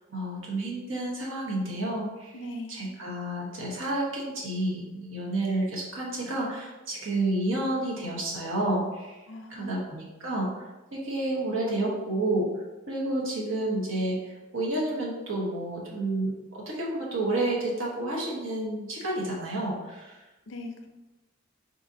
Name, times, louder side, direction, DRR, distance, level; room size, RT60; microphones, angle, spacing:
voice 1, 0.1-2.4 2.7-9.1 9.5-10.6 10.9-12.5 12.9-14.2 14.5-20.1, right 1 dB, 80° right, -3 dB, 1.2 m, -30 dB
voice 2, 2.3-2.9 9.3-9.7 20.5-20.9, left 1 dB, 65° left, 6 dB, 0.5 m, -40 dB
4.3 x 3.9 x 2.7 m, 1.1 s
head